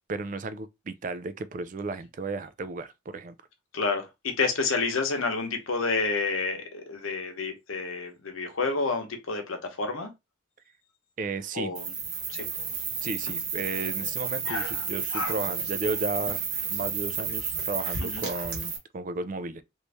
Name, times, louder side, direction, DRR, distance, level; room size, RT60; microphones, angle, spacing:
voice 1, 0.1-3.3 11.2-11.7 13.0-16.4 16.7-19.6, right 3 dB, 40° right, 0.3 m, -34 dB
voice 2, 3.7-10.1 11.5-11.8 12.3-12.5 14.5-14.8 15.1-15.3 18.0-18.2, left 4 dB, 85° left, 0.9 m, -29 dB
sound 1, 11.7-18.8, right 5 dB, 70° right, 1.3 m, -32 dB
3.0 x 2.7 x 3.4 m
head